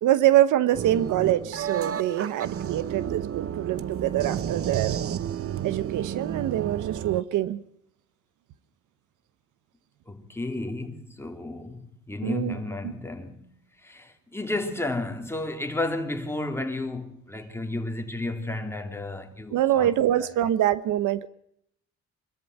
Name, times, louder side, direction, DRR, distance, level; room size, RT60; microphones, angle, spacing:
voice 1, 0.0-5.0 5.6-7.6 12.2-12.5 19.5-21.3, right 12 dB, 85° right, 1.0 m, -24 dB
sound 1, 0.7-7.2, right 9 dB, 50° right, 0.8 m, -31 dB
voice 2, 10.1-13.5 13.8-19.9 20.2-20.3, left 2 dB, 10° left, 3.2 m, -32 dB
24.5 x 13.5 x 9.1 m
cardioid pair, 90°, 30 cm